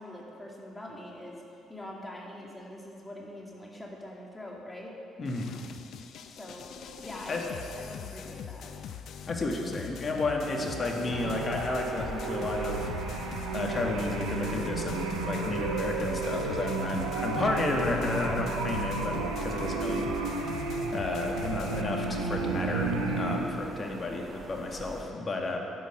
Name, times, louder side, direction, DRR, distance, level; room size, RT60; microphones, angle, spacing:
voice 1, 0.0-1.4 1.7-4.9 6.2-6.8 7.0-8.7 23.2-23.7, left 1 dB, 15° left, -2 dB, 2.4 m, -44 dB
sound 1, 5.2-21.8, left 8 dB, 60° left, 0.6 m, -42 dB
voice 2, 5.2-5.5 7.3-7.4 9.3-12.9 13.5-20.1 20.9-25.6, left 2 dB, 35° left, 1 dB, 1.8 m, -32 dB
sound 2, 10.1-23.4, right 3 dB, 85° right, 0.9 m, -33 dB
sound 3, 11.1-25.0, right 3 dB, 40° right, 1.8 m, -43 dB
11.0 x 8.7 x 6.2 m, 2.7 s
hypercardioid pair, 50°, 0 cm